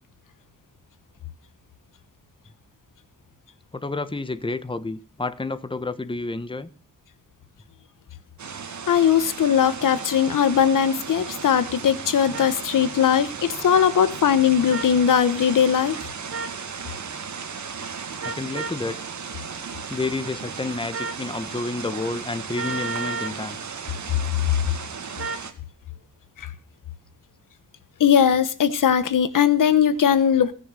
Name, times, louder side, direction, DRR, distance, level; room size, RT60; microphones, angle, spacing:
voice 1, 3.7-6.7 18.2-19.0 19.9-23.6, left 3 dB, 15° left, 1.2 m, -30 dB
sound 1, 8.4-25.5, right 6 dB, 65° right, 2.1 m, -36 dB
voice 2, 8.9-16.0 26.4-26.5 28.0-30.5, left 8 dB, 80° left, 1.2 m, -19 dB
sound 2, 12.3-12.5 13.7-13.9 14.7-14.9 16.3-16.6 18.2-18.8 20.9-21.2 22.5-23.4 25.2-25.5, right 4 dB, 45° right, 1.5 m, -32 dB
20.5 x 6.9 x 6.4 m
cardioid pair, 75°, 32 cm